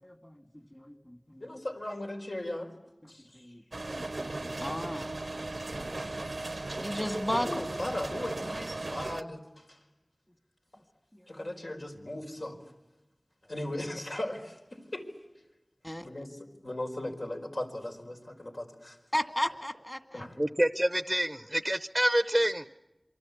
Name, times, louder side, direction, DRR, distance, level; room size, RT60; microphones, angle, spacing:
voice 1, 0.0-1.6 3.0-3.6 3.9-5.1 6.8-7.6 11.1-11.4 15.8-16.1 19.1-20.3, equal, 20° left, 8 dB, 2.1 m, -35 dB
voice 2, 1.4-2.7 3.1-3.4 5.7-6.2 7.3-9.8 11.3-12.6 13.5-15.1 16.0-19.0 20.1-20.4, left 1 dB, 70° left, 2 dB, 4.7 m, -38 dB
sound 1, 3.7-9.2, right 2 dB, 80° right, 0.8 m, -37 dB
voice 3, 20.4-22.7, right 1 dB, 15° right, 11 dB, 0.8 m, -27 dB
27.5 x 24.0 x 8.5 m, 1.0 s
wide cardioid pair, 40°, 0 cm